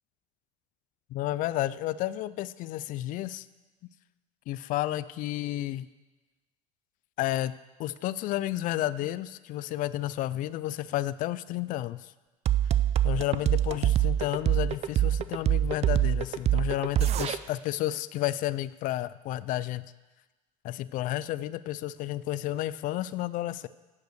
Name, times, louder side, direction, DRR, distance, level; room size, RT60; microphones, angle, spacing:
voice 1, 1.1-3.5 4.5-5.9 7.2-7.5 7.8-12.1 13.0-19.9 20.6-23.7, left 14 dB, 50° left, 17 dB, 0.4 m, -31 dB
sound 1, 12.5-17.4, right 12 dB, 40° right, 0.5 m, -24 dB
10.5 x 5.4 x 6.8 m, 1.2 s
supercardioid pair, 95°, 17 cm